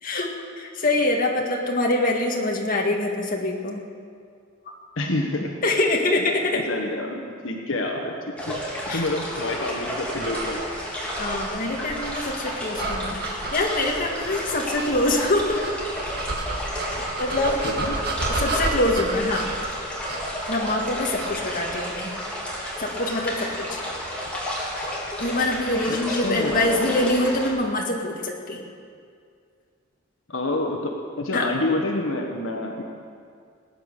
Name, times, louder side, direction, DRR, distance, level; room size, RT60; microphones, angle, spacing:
voice 1, 0.6-3.8 5.6-6.6 8.9-9.0 9.4-9.5 11.2-15.6 16.8-17.6 18.3-19.9 20.5-22.1 22.8-23.8 24.8-24.9 25.2-28.6 31.3-31.5, left 2 dB, 45° left, 0 dB, 1.8 m, -25 dB
voice 2, 5.0-5.5 6.5-8.2 8.4-8.6 8.8-10.6 17.6-17.9 18.4-18.5 25.9-26.8 30.3-32.8, left 2 dB, 80° left, 2 dB, 1.3 m, -28 dB
sound 1, 8.4-27.5, equal, 5° left, 3.2 m, -32 dB
sound 2, 10.2-22.1, right 2 dB, 55° right, 1.6 m, -32 dB
19.0 x 9.2 x 6.6 m, 2.2 s
head